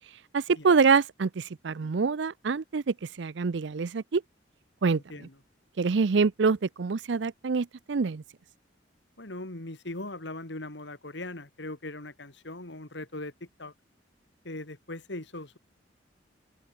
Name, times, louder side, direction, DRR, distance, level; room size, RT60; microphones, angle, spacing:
voice 1, 0.3-4.2 4.8-5.3 5.8-8.2, right 5 dB, 65° right, 0.5 m, -26 dB
voice 2, 9.2-13.3 13.6-13.7 14.4-15.6, left 2 dB, 65° left, 2.6 m, -39 dB
open air
head